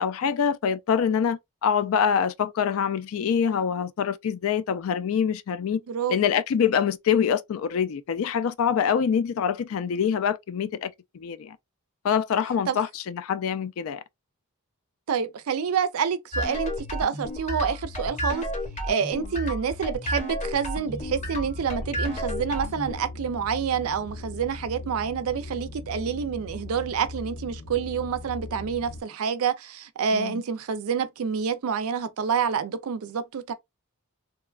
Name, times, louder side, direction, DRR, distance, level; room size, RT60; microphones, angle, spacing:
voice 1, 0.0-5.8 6.1-11.6 12.0-14.0 30.1-30.4, left 7 dB, 65° left, 0.3 m, -25 dB
voice 2, 5.9-6.2 12.7-12.8 15.1-18.5 18.8-33.5, right 6 dB, 75° right, 0.4 m, -28 dB
sound 1, 16.3-23.0, equal, 30° left, 0.7 m, -32 dB
sound 2, 20.8-29.0, left 2 dB, 80° left, 0.8 m, -39 dB
2.9 x 2.2 x 2.3 m
head